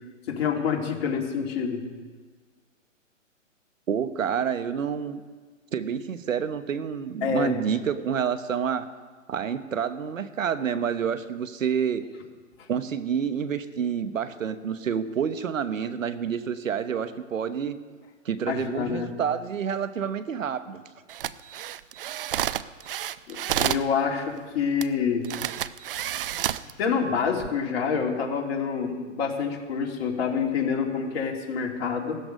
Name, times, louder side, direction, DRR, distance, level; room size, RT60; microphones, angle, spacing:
voice 1, 0.3-1.9 7.2-7.5 18.5-19.1 23.3-25.3 26.8-32.2, left 6 dB, 50° left, 0 dB, 2.8 m, -27 dB
voice 2, 3.9-5.2 5.7-8.9 9.3-12.1 12.7-17.8 18.2-20.8, right 7 dB, 75° right, 12 dB, 1.1 m, -28 dB
sound 1, 21.1-23.9 24.8-24.9 25.2-26.7 27.3-27.5, right 11 dB, 45° right, 0.5 m, -30 dB
17.0 x 13.0 x 5.2 m, 1.5 s
hypercardioid pair, 135°, 39 cm